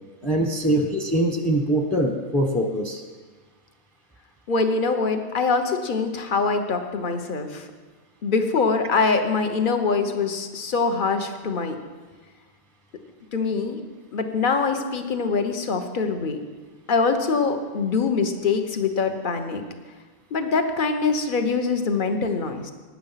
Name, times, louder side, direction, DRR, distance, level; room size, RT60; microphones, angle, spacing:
voice 1, 0.2-3.0, right 1 dB, ahead, 4 dB, 1.0 m, -23 dB
voice 2, 4.5-7.7 8.2-11.8 13.3-13.8 14.1-16.4 16.9-19.6 20.3-22.7, left 4 dB, 40° left, 7 dB, 1.2 m, -24 dB
16.0 x 10.5 x 5.8 m, 1.4 s
omnidirectional pair, 1.4 m